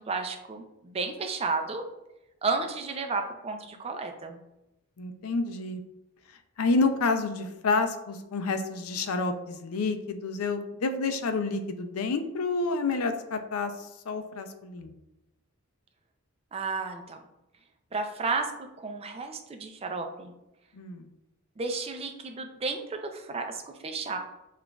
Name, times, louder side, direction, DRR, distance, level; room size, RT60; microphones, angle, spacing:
voice 1, 0.0-1.8 2.4-4.4 16.5-17.2 17.9-20.3 21.6-24.2, right 4 dB, 25° right, 5 dB, 0.4 m, -32 dB
voice 2, 5.0-5.8 6.6-14.9 20.7-21.1, left 3 dB, 85° left, 8 dB, 0.5 m, -29 dB
6.9 x 2.4 x 2.3 m, 0.92 s
head